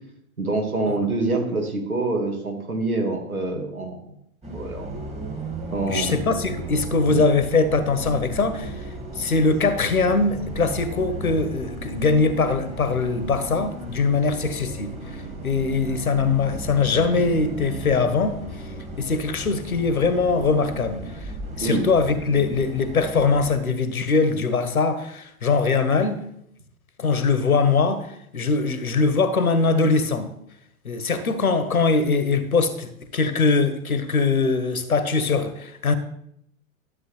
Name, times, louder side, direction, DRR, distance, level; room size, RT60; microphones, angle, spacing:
voice 1, 0.4-4.0 4.5-5.0 5.7-6.2 7.1-7.2 21.6-21.8, right 2 dB, 85° right, 2.1 m, -26 dB
Bus, 4.4-23.5, right 2 dB, 15° right, 1.8 m, -35 dB
voice 2, 5.9-8.8 9.2-18.4 19.0-21.3 21.6-26.2 27.0-30.3 30.8-35.9, left 4 dB, 85° left, 1.2 m, -22 dB
12.0 x 7.7 x 3.3 m
figure-of-eight pair, 100°, 42 cm